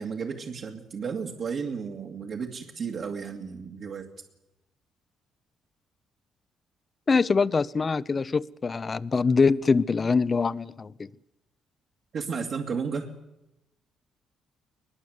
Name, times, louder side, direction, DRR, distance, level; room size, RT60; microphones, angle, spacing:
voice 1, 0.0-4.1 12.1-13.1, right 5 dB, 55° right, 1 dB, 2.5 m, -33 dB
voice 2, 7.1-11.1, left 4 dB, 35° left, 19 dB, 0.8 m, -24 dB
22.0 x 21.5 x 8.1 m, 0.91 s
cardioid pair, 90°, 0 cm